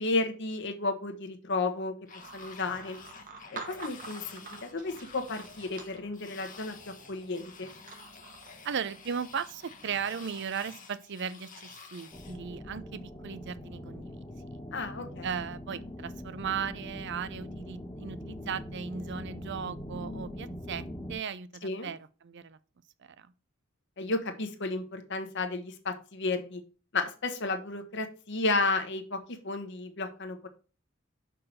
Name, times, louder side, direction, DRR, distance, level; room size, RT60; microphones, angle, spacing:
voice 1, 0.0-1.9 2.3-3.0 3.5-7.7 14.7-15.3 21.6-21.9 24.0-26.6 26.9-30.5, left 3 dB, 60° left, 1.1 m, -32 dB
sound 1, 2.1-12.4, left 5 dB, 40° left, 1.0 m, -50 dB
sound 2, 2.2-10.1, right 4 dB, 45° right, 1.2 m, -49 dB
voice 2, 8.6-14.2 15.2-22.6 23.0-23.3, right 7 dB, 60° right, 0.5 m, -37 dB
sound 3, 12.1-21.1, equal, 15° left, 1.3 m, -42 dB
5.8 x 4.6 x 6.3 m
head